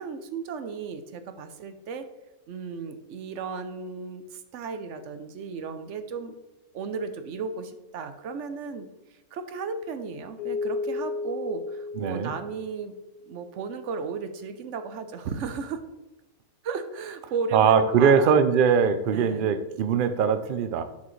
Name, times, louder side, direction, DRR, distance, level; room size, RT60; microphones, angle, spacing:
voice 1, 0.0-2.1 2.5-6.3 6.7-8.9 9.3-12.9 13.3-15.8 16.6-18.4 19.1-19.4, right 5 dB, 60° right, 9 dB, 0.9 m, -34 dB
Keyboard (musical), 10.4-13.4, left 3 dB, 75° left, 1.3 m, -33 dB
voice 2, 12.0-12.3 17.5-20.8, right 7 dB, 80° right, 10 dB, 0.4 m, -21 dB
7.4 x 6.1 x 3.1 m, 1.0 s
omnidirectional pair, 1.6 m